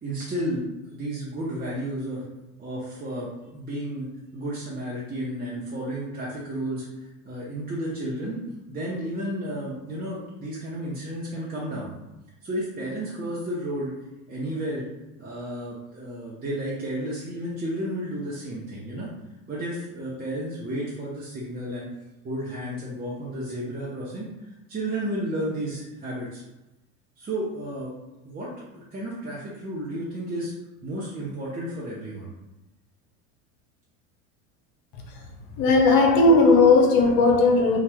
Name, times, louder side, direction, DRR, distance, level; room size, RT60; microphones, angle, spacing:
voice 1, 0.0-2.3 2.6-6.9 7.2-8.4 8.7-11.9 12.4-13.9 14.3-14.9 15.2-19.1 19.5-21.9 22.2-24.3 24.7-26.4 27.2-27.9 28.2-30.5 30.8-32.3, right 1 dB, 25° right, -7 dB, 0.8 m, -32 dB
voice 2, 35.6-37.8, left 3 dB, 60° left, 2 dB, 0.8 m, -17 dB
2.8 x 2.3 x 3.4 m, 0.99 s
supercardioid pair, 90°, 39 cm